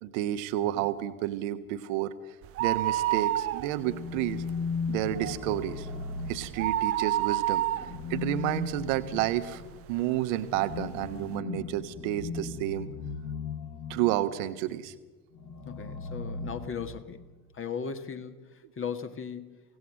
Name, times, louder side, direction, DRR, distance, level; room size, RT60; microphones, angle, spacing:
voice 1, 0.0-2.1 2.6-4.4 4.9-5.9 6.3-7.6 8.1-9.6 9.9-12.9 13.9-14.9, right 13 dB, 55° right, 12 dB, 1.4 m, -30 dB
sound 1, 2.4-4.1 4.4-4.5 5.0-9.4 9.9-10.0 10.8-10.9 11.1-11.2, right 14 dB, 30° right, 0.6 m, -29 dB
sound 2, 3.8-7.1 7.7-14.4 15.3-17.3, left 4 dB, 65° left, 3.2 m, -37 dB
voice 2, 15.6-17.3 17.5-19.6, left 6 dB, 30° left, 8 dB, 1.7 m, -37 dB
24.0 x 17.5 x 6.3 m, 1.2 s
figure-of-eight pair, 65°, 44 cm